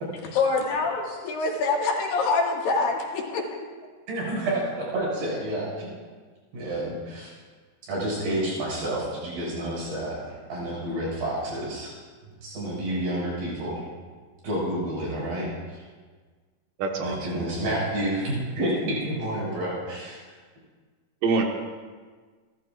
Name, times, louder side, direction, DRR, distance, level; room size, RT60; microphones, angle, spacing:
voice 1, 0.3-3.5, left 3 dB, 75° left, -1 dB, 3.5 m, -25 dB
voice 2, 4.1-5.9 6.5-7.3 7.9-11.9 12.4-13.8 14.4-15.8 17.0-20.2, right 1 dB, 90° right, -5 dB, 7.9 m, -29 dB
voice 3, 16.8-17.4 21.2-21.4, right 4 dB, 70° right, 2 dB, 3.0 m, -25 dB
30.0 x 13.5 x 2.5 m, 1.5 s
omnidirectional pair, 4.1 m